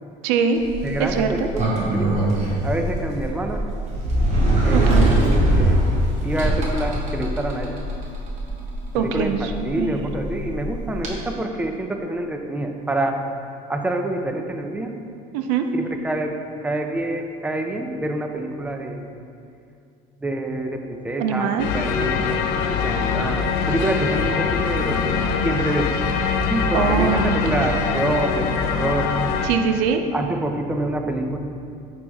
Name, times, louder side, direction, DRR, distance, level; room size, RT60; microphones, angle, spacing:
voice 1, 0.2-0.6 1.0-1.5 4.7-5.1 8.9-10.0 15.3-15.7 21.2-21.7 26.7-27.7 29.4-30.0, right 6 dB, 90° right, 6 dB, 0.5 m, -22 dB
Sliding door, 0.6-11.1, right 1 dB, 45° right, 1.2 m, -22 dB
voice 2, 0.8-2.4 2.6-3.6 4.6-5.8 6.2-7.8 8.9-13.2 13.7-14.9 15.7-19.1 20.2-25.9 26.5-29.1 30.1-31.4, right 1 dB, 10° right, 4 dB, 0.4 m, -27 dB
sound 1, 21.6-29.5, left 5 dB, 75° left, 0.5 m, -23 dB
9.2 x 3.3 x 3.5 m, 2.4 s
cardioid pair, 125°, 17 cm